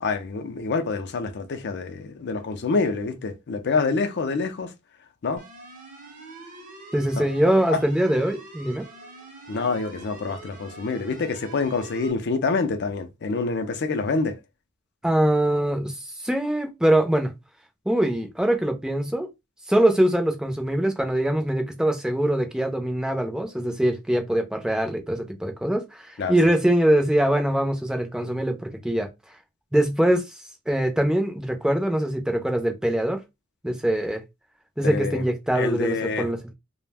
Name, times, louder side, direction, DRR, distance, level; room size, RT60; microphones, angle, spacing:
voice 1, 0.0-4.7 5.2-5.4 7.2-7.3 7.7-7.8 9.5-14.4 26.2-26.3 34.8-35.2 35.5-36.3, left 4 dB, 55° left, 0.5 m, -26 dB
sound 1, 5.4-12.1, right 2 dB, 40° right, 0.7 m, -44 dB
voice 2, 6.9-8.9 15.0-17.3 17.9-19.3 19.7-29.1 29.7-30.3 30.7-33.2 33.6-34.2 34.8-36.5, right 1 dB, 5° right, 0.5 m, -23 dB
2.4 x 2.1 x 3.3 m
head